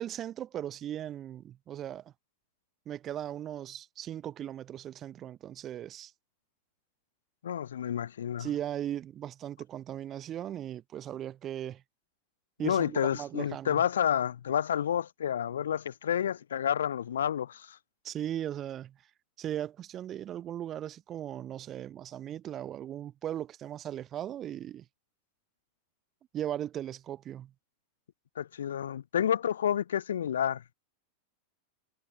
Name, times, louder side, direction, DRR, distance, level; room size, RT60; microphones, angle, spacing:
voice 1, 0.0-2.1 2.9-6.1 8.4-11.8 12.6-13.8 18.0-19.0 19.4-24.8 26.3-27.5, right 11 dB, 30° right, 0.5 m, -38 dB
voice 2, 7.4-8.5 12.6-17.8 28.4-30.6, left 9 dB, 65° left, 0.3 m, -30 dB
figure-of-eight pair, 90°, 0 cm